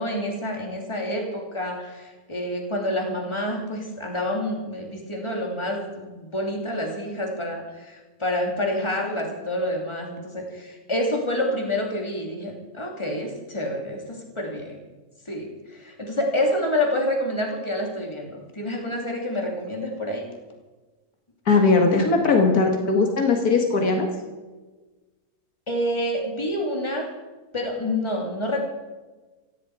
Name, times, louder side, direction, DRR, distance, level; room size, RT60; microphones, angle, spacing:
voice 1, 0.0-14.8 15.3-15.5 15.7-20.2 25.7-27.1 27.5-28.7, left 1 dB, 20° left, 0 dB, 3.1 m, -28 dB
voice 2, 21.5-24.1, left 3 dB, 85° left, 3 dB, 2.3 m, -19 dB
16.5 x 16.5 x 5.0 m, 1.2 s
omnidirectional pair, 1.5 m